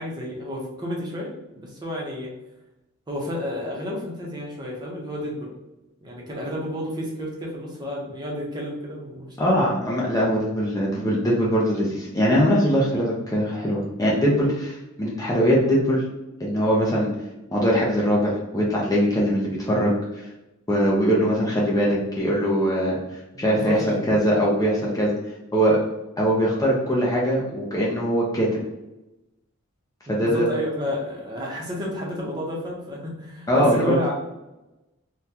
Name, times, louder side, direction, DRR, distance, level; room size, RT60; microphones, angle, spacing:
voice 1, 0.0-2.3 3.1-5.5 6.0-9.5 23.3-24.2 30.1-34.1, left 1 dB, 20° right, -3 dB, 0.7 m, -31 dB
voice 2, 9.4-16.0 16.4-17.1 17.5-20.2 20.7-25.1 25.5-25.8 26.2-28.6 30.1-30.5 33.5-34.0, equal, 15° left, -4 dB, 0.5 m, -22 dB
3.6 x 2.2 x 2.8 m, 0.98 s
head